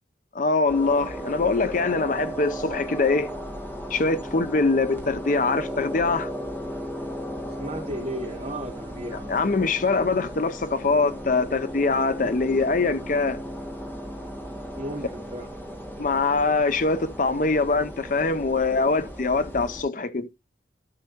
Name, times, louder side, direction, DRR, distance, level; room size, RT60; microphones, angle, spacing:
voice 1, 0.3-3.3 3.9-6.3 9.3-13.4 16.0-20.3, left 3 dB, 45° left, 0.6 m, -23 dB
sound 1, 0.7-19.8, equal, 10° left, 1.6 m, -36 dB
voice 2, 7.6-9.4 12.2-12.4 14.7-15.5, equal, 35° right, 3.3 m, -34 dB
12.5 x 5.7 x 2.9 m
head